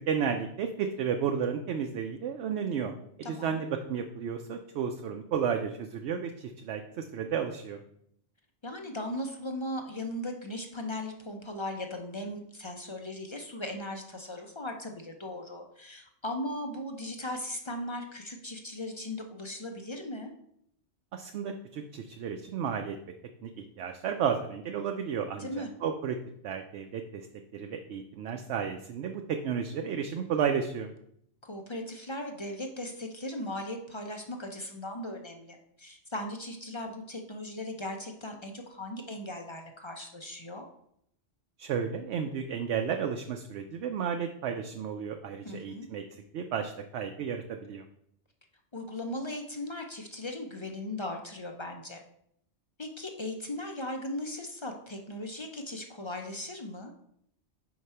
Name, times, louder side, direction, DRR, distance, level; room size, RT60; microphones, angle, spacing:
voice 1, 0.1-2.9 3.3-7.8 21.1-23.0 23.4-26.2 26.4-27.3 27.5-30.9 41.6-46.0 46.3-47.8, right 7 dB, 75° right, 5 dB, 0.8 m, -32 dB
voice 2, 3.2-3.6 8.6-20.3 25.4-25.7 31.4-40.7 45.4-45.9 48.7-52.0 52.8-56.9, left 1 dB, 35° left, 3 dB, 0.5 m, -38 dB
4.7 x 4.4 x 5.6 m, 0.71 s
omnidirectional pair, 1.2 m